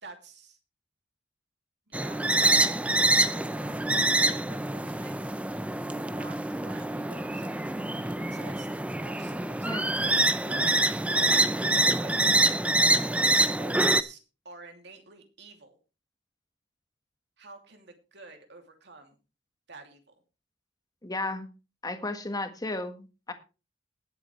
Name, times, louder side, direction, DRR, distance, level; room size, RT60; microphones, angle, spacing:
voice 1, 0.0-0.6 1.9-4.0 4.3-5.3 6.0-10.8 11.7-14.2 14.4-15.8 17.4-19.2 19.7-20.0, right 3 dB, 65° right, 5 dB, 2.7 m, -49 dB
sound 1, 1.9-14.0, right 2 dB, 5° right, 0.6 m, -25 dB
voice 2, 9.6-10.0 21.0-21.5 21.8-23.3, left 2 dB, 20° left, 7 dB, 1.5 m, -34 dB
19.5 x 8.0 x 3.2 m, 0.31 s
head